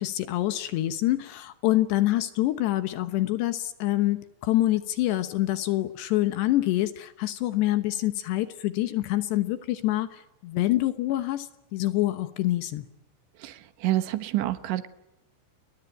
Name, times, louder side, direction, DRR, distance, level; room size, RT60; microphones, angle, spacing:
voice 1, 0.0-12.9, left 15 dB, 70° left, 11 dB, 3.0 m, -26 dB
voice 2, 13.4-14.9, right 15 dB, 75° right, 12 dB, 3.3 m, -28 dB
29.5 x 22.0 x 9.1 m, 0.90 s
omnidirectional pair, 5.6 m